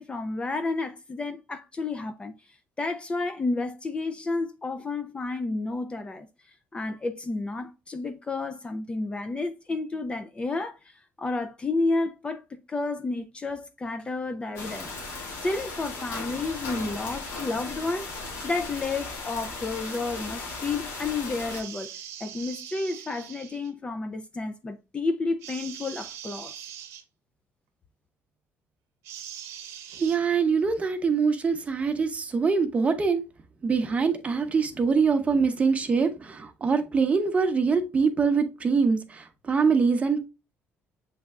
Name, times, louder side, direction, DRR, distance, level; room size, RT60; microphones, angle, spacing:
voice 1, 0.0-2.3 2.8-6.3 6.7-10.9 11.2-14.9 15.4-18.1 18.4-21.9 22.2-26.6, left 3 dB, 20° left, 0.4 m, -31 dB
sound 1, 14.6-21.6, left 3 dB, 85° left, 1.6 m, -37 dB
sound 2, 21.5-23.7 25.4-27.0 29.0-30.2, right 10 dB, 85° right, 0.7 m, -42 dB
voice 2, 30.0-33.2 33.6-40.2, right 5 dB, 30° right, 0.8 m, -24 dB
7.1 x 3.2 x 2.3 m
cardioid pair, 120°, 5 cm